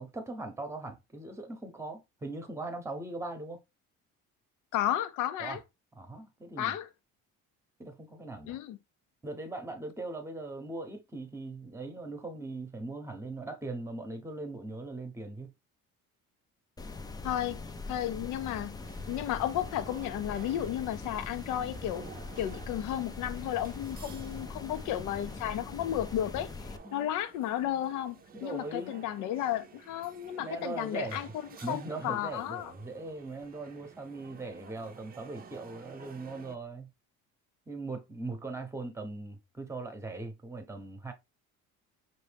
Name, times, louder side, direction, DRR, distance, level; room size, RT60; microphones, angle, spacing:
voice 1, 0.0-3.6 5.4-5.6 5.9-6.8 7.8-8.6 9.2-15.5 26.8-27.1 28.3-29.0 30.4-31.3 31.6-36.9 37.7-41.1, right 2 dB, 10° right, 0.9 m, -40 dB
voice 2, 4.7-5.6 6.6-6.9 8.5-8.8 17.2-17.6 17.9-18.8 19.1-22.1 22.4-26.5 26.9-28.2 28.4-32.7, left 12 dB, 75° left, 0.7 m, -33 dB
sound 1, 16.8-26.8, left 3 dB, 15° left, 0.4 m, -42 dB
sound 2, 18.8-36.6, right 6 dB, 30° right, 0.6 m, -52 dB
5.2 x 2.8 x 3.3 m
cardioid pair, 115°, 31 cm